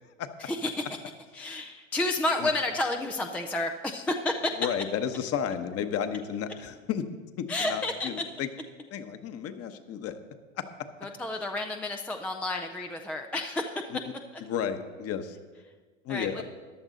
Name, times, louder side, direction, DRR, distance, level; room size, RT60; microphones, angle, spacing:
voice 1, 0.4-0.8 1.3-4.6 7.5-8.1 11.0-13.9 16.1-16.4, left 2 dB, 5° left, 5 dB, 0.3 m, -30 dB
voice 2, 4.6-7.1 7.4-8.5 8.9-10.2 10.6-10.7 14.5-15.4 16.0-16.4, left 8 dB, 35° left, 9 dB, 1.1 m, -32 dB
14.5 x 11.0 x 4.0 m, 1.4 s
hypercardioid pair, 100°, 42 cm